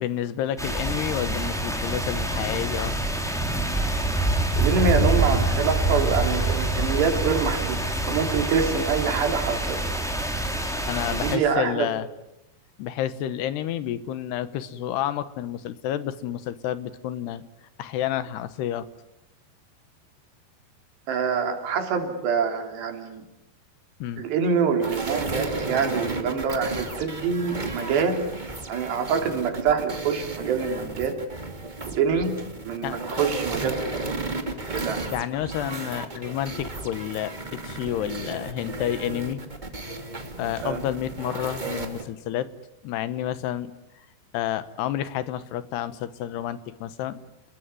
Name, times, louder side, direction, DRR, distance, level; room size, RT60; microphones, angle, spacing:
voice 1, 0.0-3.0 10.9-12.1 12.8-17.4 17.8-18.9 24.0-24.3 32.8-33.0 35.1-39.4 39.8-39.9 40.4-42.5 42.8-43.7 44.3-47.2, left 11 dB, 80° left, 14 dB, 3.2 m, -30 dB
sound 1, 0.6-11.4, right 1 dB, ahead, 3.0 m, -26 dB
voice 2, 4.6-9.8 11.1-11.9 21.1-23.2 24.2-28.3 28.7-31.2 31.9-34.1 34.7-35.1 40.6-40.8, right 6 dB, 80° right, 6 dB, 5.1 m, -25 dB
sound 2, 24.8-42.0, right 3 dB, 35° right, 0.7 m, -34 dB
30.0 x 20.5 x 9.6 m, 0.87 s
omnidirectional pair, 4.8 m